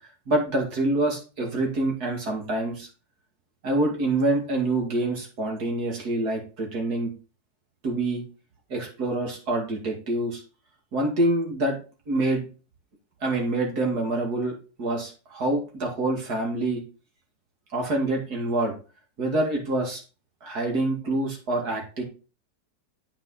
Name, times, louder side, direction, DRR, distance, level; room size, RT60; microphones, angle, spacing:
voice 1, 0.3-2.9 3.6-7.1 7.8-8.2 8.7-10.4 10.9-11.7 12.1-12.4 13.2-16.8 17.7-18.7 19.2-20.0 20.4-22.0, right 2 dB, 60° right, 1 dB, 2.8 m, -26 dB
8.7 x 5.3 x 4.1 m, 0.34 s
omnidirectional pair, 1.9 m